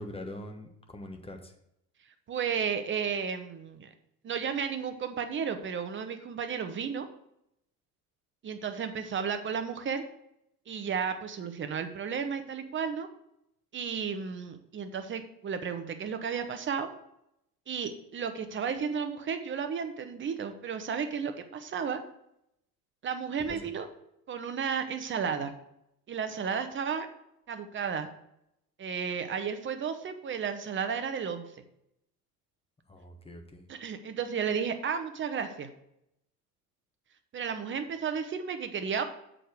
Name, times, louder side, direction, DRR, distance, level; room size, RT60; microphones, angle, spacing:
voice 1, 0.0-1.5 23.5-23.7 32.9-33.6, left 1 dB, 10° left, 4 dB, 1.1 m, -43 dB
voice 2, 2.3-3.9 4.2-7.1 8.4-10.0 10.7-13.1 13.7-16.9 17.7-22.0 23.0-23.9 24.3-25.5 26.1-27.1 27.5-28.1 28.8-31.5 33.7-35.7 37.3-39.0, right 6 dB, 25° right, 8 dB, 0.9 m, -33 dB
6.8 x 5.0 x 6.1 m, 0.79 s
figure-of-eight pair, 65°, 46 cm